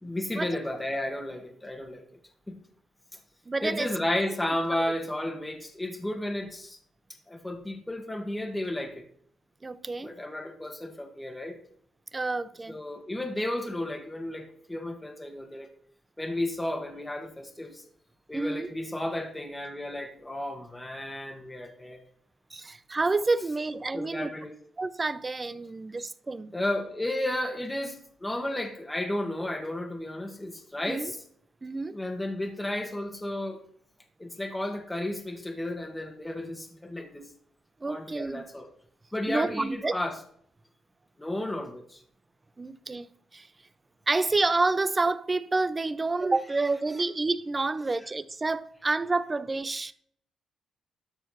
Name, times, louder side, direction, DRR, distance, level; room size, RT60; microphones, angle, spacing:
voice 1, 0.0-2.0 2.5-2.6 3.6-6.8 7.3-9.0 10.0-11.6 12.7-15.7 16.2-17.8 18.3-22.0 23.9-24.5 26.5-31.2 31.9-33.6 34.2-37.3 37.9-38.7 39.1-40.2 41.2-42.0 46.9-47.0, left 1 dB, 10° left, 1.4 m, -33 dB
voice 2, 3.5-3.9 9.6-10.1 12.1-12.8 18.3-18.7 22.5-24.3 24.8-26.5 30.9-31.1 31.6-32.0 37.8-38.4 39.3-40.0 42.6-43.1 43.3-43.5 44.1-49.9, right 3 dB, 25° right, 0.6 m, -28 dB
12.5 x 4.5 x 5.7 m
cardioid pair, 110°, 0 cm